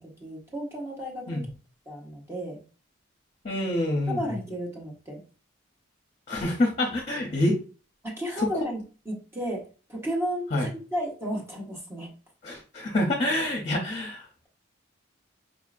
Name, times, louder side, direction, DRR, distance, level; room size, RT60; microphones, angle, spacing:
voice 1, 0.0-1.5 1.9-2.6 4.1-5.2 8.0-12.1, equal, 15° right, -2 dB, 1.1 m, -33 dB
voice 2, 3.4-4.4 6.3-7.6 10.5-10.7 12.4-14.5, left 1 dB, 35° left, 1 dB, 0.8 m, -27 dB
5.1 x 2.8 x 2.4 m, 0.36 s
head